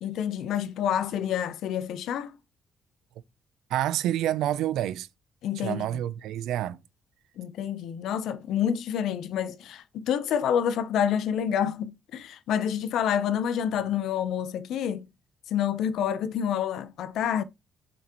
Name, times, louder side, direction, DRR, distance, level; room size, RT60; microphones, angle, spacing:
voice 1, 0.0-2.4 5.4-6.0 7.4-15.1 15.5-17.4, left 9 dB, 80° left, 0.6 m, -28 dB
voice 2, 3.7-5.1 5.6-6.8, right 12 dB, 85° right, 0.5 m, -28 dB
6.9 x 5.9 x 3.0 m
cardioid pair, 90°, 0 cm